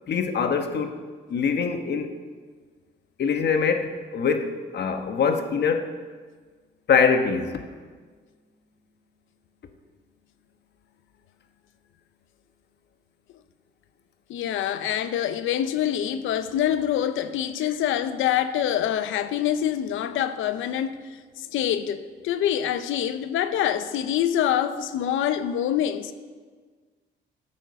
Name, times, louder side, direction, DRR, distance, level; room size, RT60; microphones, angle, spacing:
voice 1, 0.1-1.0 1.3-2.2 3.2-5.9 6.9-7.6, left 6 dB, 55° left, 1.2 m, -23 dB
voice 2, 14.3-21.0 21.4-26.1, left 10 dB, 85° left, 0.7 m, -25 dB
13.5 x 7.9 x 5.8 m
cardioid pair, 90°, 20 cm